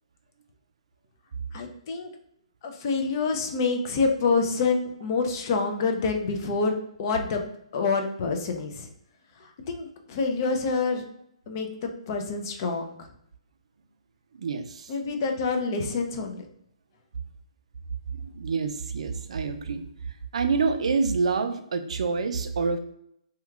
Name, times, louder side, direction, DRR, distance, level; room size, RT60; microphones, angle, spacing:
voice 1, 1.5-2.1 2.6-7.4 7.7-8.9 9.4-11.0 11.5-13.1 14.9-16.4, left 4 dB, 35° left, 4 dB, 0.5 m, -27 dB
voice 2, 14.4-14.9 18.1-19.8 20.3-22.8, right 4 dB, 70° right, 8 dB, 0.4 m, -27 dB
2.9 x 2.3 x 3.4 m, 0.73 s
hypercardioid pair, 165°, 3 cm